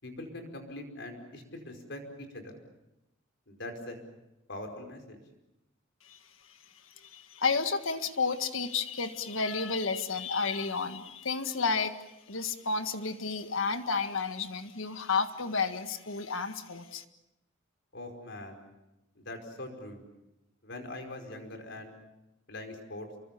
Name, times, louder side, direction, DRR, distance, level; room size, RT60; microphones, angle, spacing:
voice 1, 0.0-2.0 2.3-2.5 3.5-4.0 4.5-5.2 17.9-18.6 19.2-20.0 20.6-21.9 22.5-23.1, left 1 dB, 60° left, 4 dB, 5.2 m, -42 dB
voice 2, 7.0-11.9 12.3-17.0, left 4 dB, 85° left, 8 dB, 1.7 m, -31 dB
29.0 x 23.5 x 7.0 m, 0.93 s
head